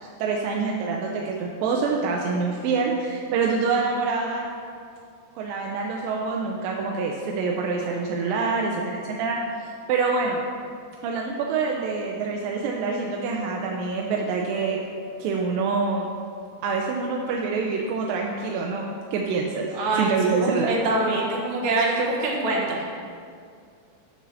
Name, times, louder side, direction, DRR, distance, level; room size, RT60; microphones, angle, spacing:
voice 1, 0.2-4.5 5.4-9.4 9.9-10.4 11.0-14.8 15.2-16.1 16.6-20.7, right 4 dB, 80° right, 0 dB, 2.2 m, -26 dB
voice 2, 19.7-22.8, right 2 dB, 60° right, -3 dB, 2.4 m, -24 dB
7.0 x 6.8 x 6.3 m, 2.3 s
omnidirectional pair, 4.3 m